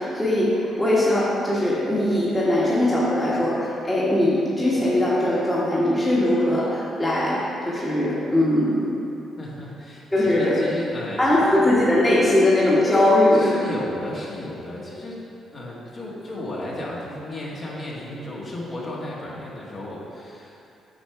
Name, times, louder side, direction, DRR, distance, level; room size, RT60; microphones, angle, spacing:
voice 1, 0.0-8.9 10.1-10.6 11.2-13.6, left 1 dB, 15° left, -7 dB, 1.4 m, -20 dB
voice 2, 9.4-11.7 13.3-15.2 15.5-20.6, left 1 dB, 40° left, -5 dB, 1.7 m, -34 dB
8.6 x 3.5 x 5.8 m, 2.7 s
cardioid pair, 90°, 0 cm